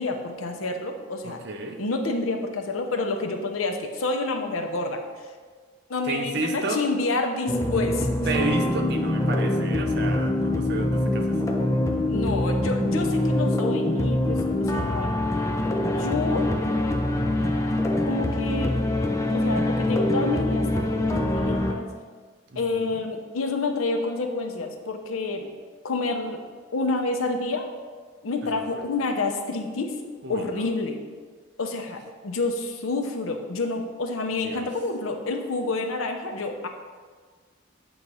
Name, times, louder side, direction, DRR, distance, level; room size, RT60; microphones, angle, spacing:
voice 1, 0.0-1.4 1.8-5.0 5.9-8.1 12.1-15.1 15.8-16.5 18.0-18.7 19.3-21.9 22.5-25.5 25.8-26.4 26.7-27.7 28.2-29.9 30.3-31.0 31.6-36.7, left 3 dB, 85° left, 4 dB, 0.8 m, -28 dB
voice 2, 1.2-1.8 6.0-6.8 8.3-11.4 22.5-23.0 28.5-28.8 30.2-30.6 34.4-34.7, right 2 dB, 55° right, 3 dB, 0.7 m, -31 dB
sound 1, 7.5-21.7, left 1 dB, 15° left, 0.4 m, -24 dB
7.8 x 3.1 x 5.5 m, 1.5 s
head